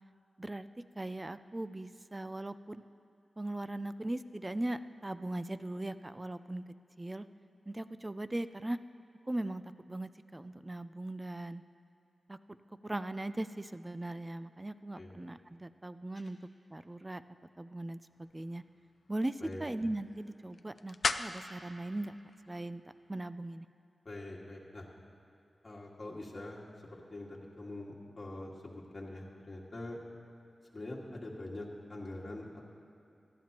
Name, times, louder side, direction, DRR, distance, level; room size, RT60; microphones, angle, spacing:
voice 1, 1.0-2.8 3.4-6.6 7.0-7.3 7.7-8.8 9.3-11.6 12.3-12.4 12.8-16.4 16.7-17.2 17.6-18.6 19.1-22.2 22.5-22.8 23.1-23.7, right 1 dB, 20° right, 12 dB, 0.3 m, -39 dB
sound 1, 18.1-23.2, left 4 dB, 55° left, 0.4 m, -41 dB
voice 2, 24.1-24.9 25.6-30.0 30.7-32.7, left 1 dB, 35° left, -4 dB, 1.9 m, -44 dB
18.5 x 13.0 x 2.9 m, 2.7 s
wide cardioid pair, 105°, 0 cm